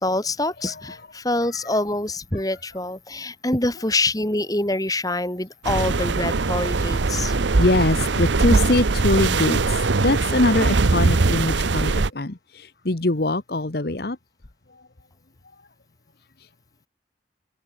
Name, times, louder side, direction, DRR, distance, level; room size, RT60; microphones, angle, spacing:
voice 1, 0.0-7.3, left 2 dB, 20° left, 2.5 m, -25 dB
voice 2, 0.6-1.0 7.2-14.2, left 2 dB, 55° left, 1.2 m, -23 dB
sound 1, 5.6-12.1, right 3 dB, 80° right, 0.8 m, -21 dB
head